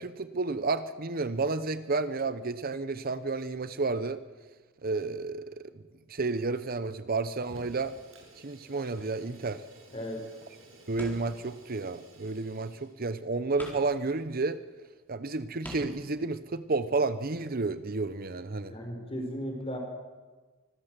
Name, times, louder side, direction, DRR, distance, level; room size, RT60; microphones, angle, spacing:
voice 1, 0.0-4.2 4.8-5.7 6.1-7.9 8.4-9.6 10.9-14.6 15.1-18.7, right 3 dB, 45° right, 13 dB, 0.8 m, -31 dB
Fire, 7.4-13.0, right 1 dB, 80° right, 6.9 m, -54 dB
sound 1, 8.7-9.6 10.9-11.5 12.8-12.9 13.6-14.0 14.8-14.9 15.6-16.1, equal, 10° left, 4.2 m, -45 dB
voice 2, 9.9-10.2 18.7-19.8, equal, 30° left, 3 dB, 4.4 m, -36 dB
25.0 x 14.5 x 7.6 m, 1.4 s
head